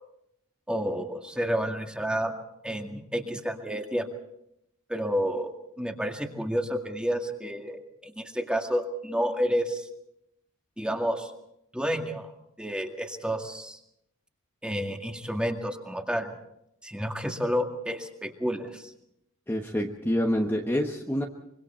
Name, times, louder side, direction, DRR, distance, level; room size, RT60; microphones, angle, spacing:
voice 1, 0.7-2.3 2.6-4.1 4.9-9.9 10.8-11.3 11.7-12.3 12.6-13.8 14.6-16.3 16.8-18.9, equal, 5° right, 3 dB, 2.0 m, -30 dB
voice 2, 19.5-21.2, equal, 10° left, 1 dB, 1.3 m, -27 dB
25.0 x 24.0 x 4.5 m, 0.77 s
head